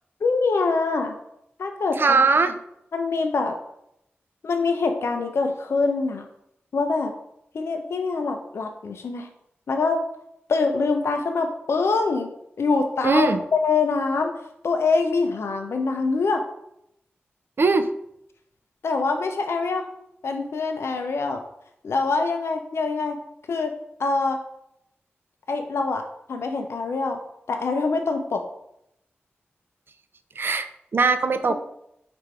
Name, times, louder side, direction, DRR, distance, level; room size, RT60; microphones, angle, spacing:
voice 1, 0.2-1.1 1.6-2.2 2.9-3.6 4.4-6.3 6.7-7.1 7.5-9.3 9.7-10.0 10.5-12.3 12.6-14.3 14.6-16.4 18.8-19.9 20.2-21.4 21.8-23.2 23.5-23.7 24.0-24.4 25.5-27.2 27.5-28.4, left 4 dB, 80° left, 4 dB, 0.5 m, -24 dB
voice 2, 2.0-2.5 13.0-13.4 17.6-17.9 30.4-31.5, right 4 dB, 60° right, 9 dB, 0.4 m, -20 dB
4.4 x 2.6 x 4.6 m, 0.77 s
cardioid pair, 55°, 4 cm